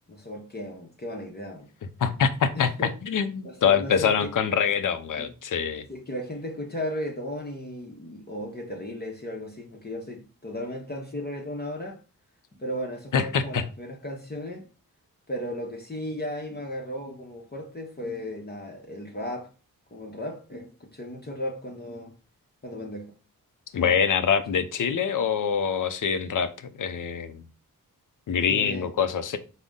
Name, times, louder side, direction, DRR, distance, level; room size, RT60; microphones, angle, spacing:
voice 1, 0.0-1.7 2.5-2.9 3.4-4.3 5.2-5.3 5.9-12.0 12.5-14.7 15.3-19.5 19.9-22.1 22.6-23.1 23.7-23.9 28.5-28.9, left 1 dB, 25° left, 0.8 m, -35 dB
voice 2, 2.0-5.8 13.1-13.6 23.7-27.4 28.3-29.4, left 7 dB, 60° left, 0.6 m, -25 dB
3.8 x 2.1 x 3.6 m
cardioid pair, 50°, 36 cm